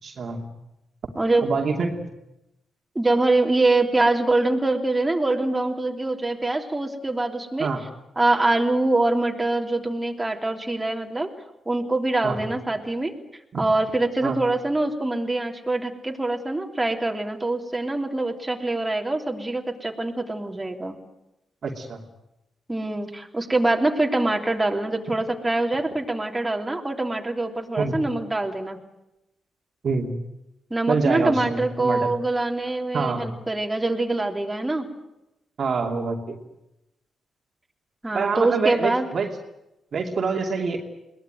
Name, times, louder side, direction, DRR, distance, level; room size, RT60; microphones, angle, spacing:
voice 1, 0.0-0.5 1.4-2.1 7.6-7.8 12.2-12.5 13.5-13.6 14.2-14.4 21.6-22.0 27.8-28.0 29.8-30.2 30.9-32.1 32.9-33.3 35.6-36.4 38.1-39.3 39.9-40.8, right 4 dB, 55° right, 2 dB, 2.7 m, -26 dB
voice 2, 1.1-1.5 2.9-7.7 8.2-11.3 11.6-13.1 13.6-21.0 22.7-28.8 30.7-34.9 38.0-39.1, right 2 dB, 20° right, 2 dB, 3.3 m, -24 dB
22.5 x 18.5 x 9.3 m, 0.90 s
hypercardioid pair, 40°, 0 cm